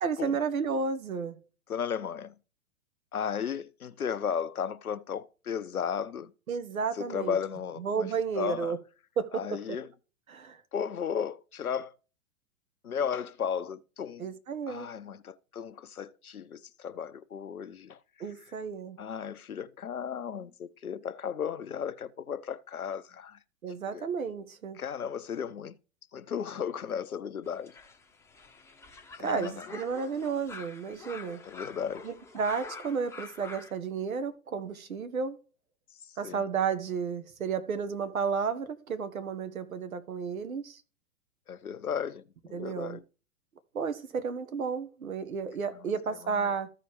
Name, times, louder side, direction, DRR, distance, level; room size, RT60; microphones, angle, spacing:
voice 1, 0.0-1.4 6.5-7.3 7.8-8.8 9.2-9.4 10.3-10.6 14.2-14.9 18.2-19.0 23.6-24.8 29.2-31.4 32.0-35.4 36.2-40.8 42.5-43.0 43.7-46.7, right 5 dB, 75° right, 1.4 m, -32 dB
voice 2, 1.7-2.3 3.1-6.3 6.9-8.8 9.3-9.9 10.7-11.9 12.8-14.3 14.7-18.5 19.0-23.4 23.9-24.1 24.7-25.7 26.1-27.8 29.1-29.8 31.4-32.1 36.0-36.4 41.5-43.0 45.7-46.5, left 7 dB, 85° left, 0.8 m, -35 dB
sound 1, 27.5-33.7, left 4 dB, 5° left, 0.9 m, -46 dB
14.5 x 5.0 x 3.1 m
figure-of-eight pair, 115°, 42 cm